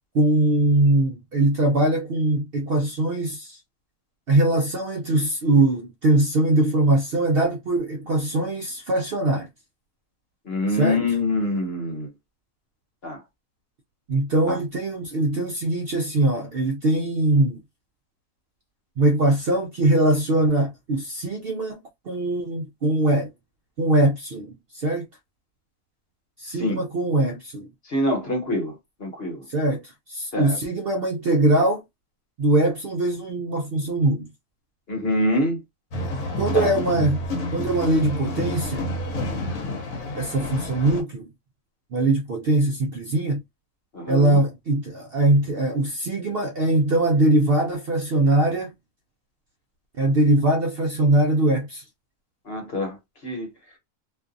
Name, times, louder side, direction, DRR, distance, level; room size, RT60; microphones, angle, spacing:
voice 1, 0.1-3.6 4.3-9.5 10.8-11.0 14.1-17.6 19.0-21.8 22.1-23.3 23.8-25.1 26.4-27.7 29.5-31.8 32.4-34.3 36.4-37.2 37.5-38.8 40.1-41.2 41.9-43.4 44.1-48.7 50.0-51.8, right 2 dB, 65° right, 0.6 m, -21 dB
voice 2, 10.5-12.1 13.0-13.2 14.5-14.6 26.6-26.8 27.9-28.7 29.0-29.4 30.3-30.6 34.9-35.6 36.5-36.7 43.9-44.4 52.5-53.0 53.2-53.5, left 1 dB, 50° left, 1.2 m, -25 dB
sound 1, 35.9-41.0, left 1 dB, 80° left, 1.1 m, -29 dB
2.5 x 2.3 x 2.5 m
omnidirectional pair, 1.4 m